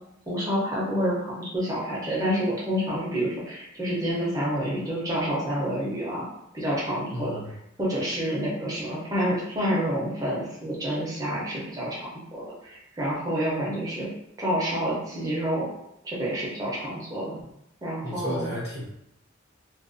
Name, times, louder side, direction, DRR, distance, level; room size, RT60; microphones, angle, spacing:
voice 1, 0.3-6.2 6.5-7.4 7.8-14.1 14.4-15.7 16.0-17.4 17.8-18.5, equal, 20° right, -6 dB, 0.6 m, -28 dB
voice 2, 7.1-7.5 18.0-18.8, equal, 55° left, -7 dB, 1.1 m, -33 dB
2.4 x 2.2 x 2.5 m, 0.82 s
head